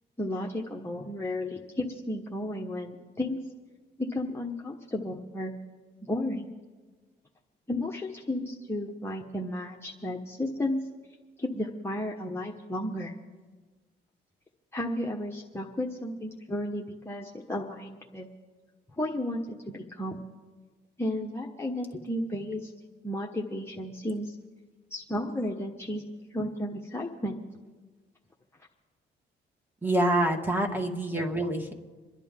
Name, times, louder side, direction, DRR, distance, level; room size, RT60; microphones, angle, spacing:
voice 1, 0.2-3.4 4.0-5.5 6.0-6.5 7.7-10.8 11.4-13.1 14.7-18.3 19.0-20.2 21.0-22.7 23.0-24.3 24.9-26.0 26.3-27.4, left 1 dB, 10° left, -2 dB, 1.2 m, -33 dB
voice 2, 29.8-31.7, right 1 dB, 10° right, 3 dB, 1.9 m, -26 dB
27.0 x 11.0 x 3.7 m, 1.4 s
cardioid pair, 90°, 20 cm